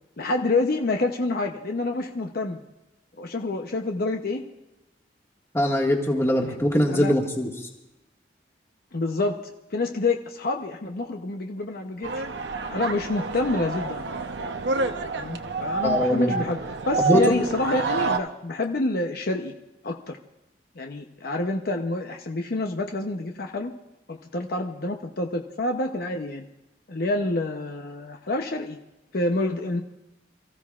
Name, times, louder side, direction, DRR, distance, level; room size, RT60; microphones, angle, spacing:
voice 1, 0.2-2.6 3.2-4.4 6.4-6.6 6.9-7.1 8.9-12.2 12.7-14.0 15.1-16.6 16.9-19.5 19.8-20.2 20.8-23.7 24.1-26.5 26.9-28.8 29.1-29.8, left 2 dB, 60° left, 3 dB, 0.8 m, -27 dB
voice 2, 5.5-7.5 15.8-16.4 17.0-17.3, left 1 dB, 15° left, 0 dB, 1.8 m, -22 dB
sound 1, 12.0-18.2, right 4 dB, 75° right, 0.8 m, -28 dB
27.5 x 14.5 x 2.4 m, 0.94 s
head